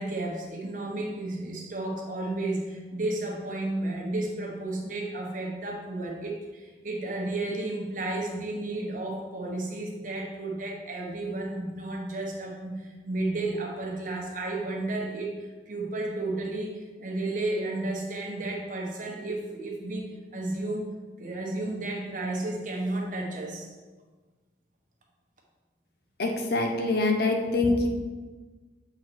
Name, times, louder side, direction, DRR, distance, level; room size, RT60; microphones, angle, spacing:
voice 1, 0.0-20.9 21.2-23.7, right 2 dB, 45° right, -1 dB, 1.1 m, -32 dB
voice 2, 26.2-27.9, left 2 dB, 55° left, 3 dB, 0.9 m, -25 dB
7.5 x 3.9 x 4.6 m, 1.3 s
head